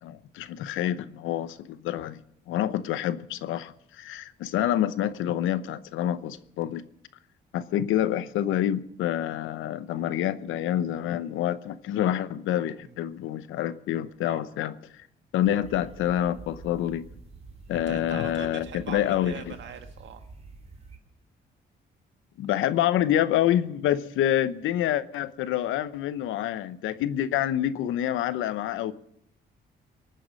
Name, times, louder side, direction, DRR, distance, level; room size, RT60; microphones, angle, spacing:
voice 1, 0.0-2.2 2.5-6.8 7.5-15.1 15.3-17.0 17.7-19.5 22.4-28.9, left 11 dB, 90° left, 15 dB, 0.8 m, -27 dB
voice 2, 14.0-14.6 17.7-20.3 22.5-22.7, right 8 dB, 70° right, 7 dB, 1.6 m, -43 dB
sound 1, 15.4-21.0, right 3 dB, 30° right, 2.7 m, -47 dB
23.0 x 9.3 x 6.3 m, 0.75 s
cardioid pair, 90°, 20 cm